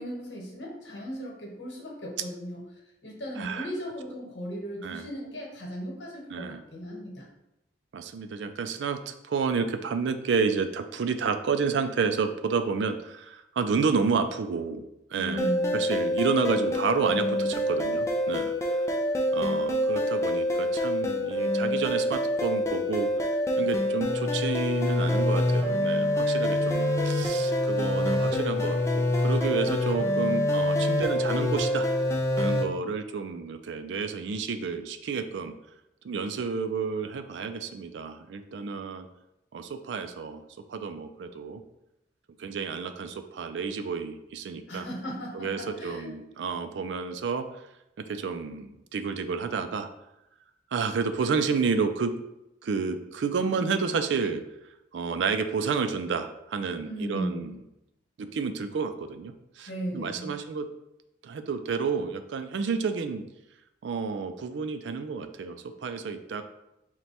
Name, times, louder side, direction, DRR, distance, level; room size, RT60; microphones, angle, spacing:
voice 1, 0.0-2.6 3.0-7.3 15.1-15.8 44.7-46.1 56.8-57.6 59.7-60.3, equal, 90° left, -2 dB, 1.2 m, -37 dB
voice 2, 3.4-3.7 4.8-5.1 6.3-6.6 7.9-14.8 15.1-18.5 19.3-31.9 32.4-35.5 36.0-39.1 39.5-40.4 40.7-41.6 42.4-44.9 45.3-47.5 48.1-49.9 50.7-52.2 52.6-54.4 54.9-57.6 58.2-60.7 61.2-63.2 63.8-66.4, right 5 dB, 85° right, 9 dB, 0.4 m, -30 dB
sound 1, 15.4-32.7, left 1 dB, 15° left, 0.4 m, -26 dB
4.5 x 2.2 x 4.1 m, 0.89 s
head